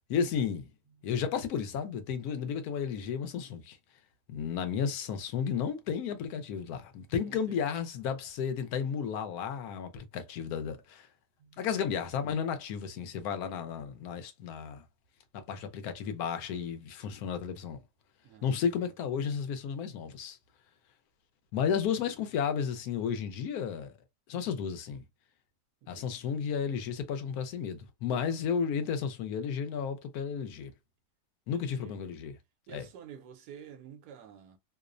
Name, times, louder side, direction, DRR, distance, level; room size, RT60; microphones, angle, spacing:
voice 1, 0.1-0.7 1.0-3.8 4.3-11.1 11.6-14.8 15.3-17.8 18.4-20.4 21.5-24.0 24.3-25.0 25.9-30.7 31.5-32.4 32.7-32.9, left 7 dB, 75° left, 1.0 m, -33 dB
voice 2, 7.2-7.6 11.4-11.6 18.2-18.8 25.8-26.3 28.3-28.4 31.5-32.0 32.7-34.6, right 8 dB, 85° right, 1.2 m, -50 dB
2.9 x 2.0 x 2.4 m
omnidirectional pair, 1.7 m